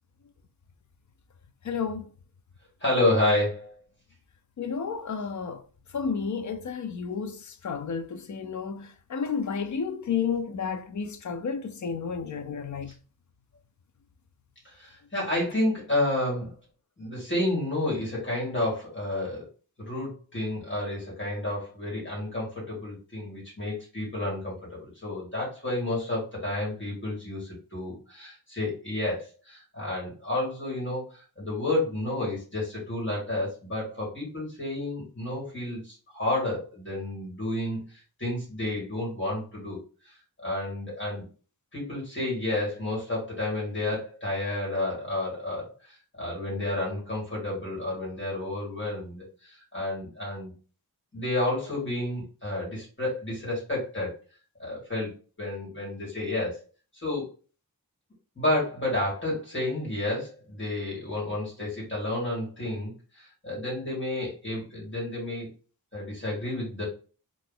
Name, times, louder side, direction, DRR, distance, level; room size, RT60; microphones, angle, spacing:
voice 1, 1.6-2.1 4.6-5.6 5.9-12.9, left 6 dB, 50° left, 0.5 m, -31 dB
voice 2, 2.8-3.7 14.6-16.5 17.0-19.5 19.8-39.8 40.1-40.2 40.4-41.3 41.7-50.5 51.1-54.1 54.6-55.1 55.4-56.6 56.9-57.2 58.4-65.5 65.9-66.8, left 1 dB, 30° left, 1.7 m, -30 dB
2.8 x 2.5 x 3.7 m
wide cardioid pair, 135°, 37 cm